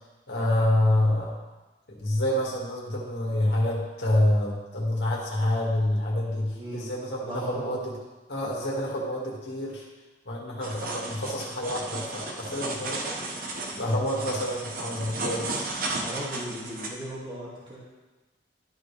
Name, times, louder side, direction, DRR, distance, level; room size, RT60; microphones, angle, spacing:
voice 1, 0.3-1.4 1.9-7.9 8.3-9.8 10.3-13.1 13.8-15.5, left 1 dB, 75° left, -3 dB, 1.9 m, -27 dB
voice 2, 6.5-6.9 7.2-7.8 8.4-8.9 13.7-13.9 16.0-17.8, right 1 dB, 30° right, -7 dB, 2.0 m, -38 dB
sound 1, 10.6-16.9, right 2 dB, 50° right, 1.0 m, -34 dB
12.0 x 5.1 x 3.3 m, 1.2 s
head